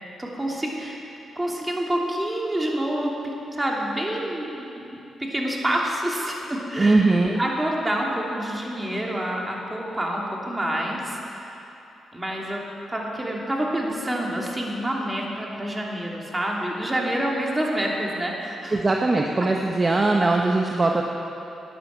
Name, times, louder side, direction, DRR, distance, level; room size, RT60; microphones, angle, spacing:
voice 1, 0.2-1.0 1.4-3.1 3.5-11.6 12.1-12.6 12.9-18.8, right 1 dB, 15° right, -2 dB, 2.9 m, -27 dB
voice 2, 6.8-7.4 18.7-21.0, right 2 dB, 30° right, 1 dB, 1.0 m, -20 dB
12.0 x 9.9 x 7.4 m, 2.9 s
supercardioid pair, 60°, 0 cm